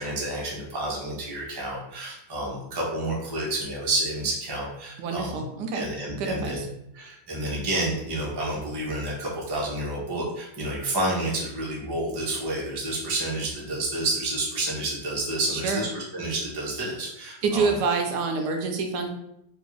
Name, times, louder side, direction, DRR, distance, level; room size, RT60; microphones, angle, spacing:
voice 1, 0.0-5.4 5.7-6.6 6.9-17.7, right 1 dB, 25° right, -4 dB, 0.5 m, -29 dB
voice 2, 5.0-5.9 6.2-6.7 15.5-15.8 17.4-19.1, right 4 dB, 80° right, 4 dB, 1.2 m, -27 dB
3.4 x 2.3 x 3.0 m, 0.79 s
omnidirectional pair, 1.8 m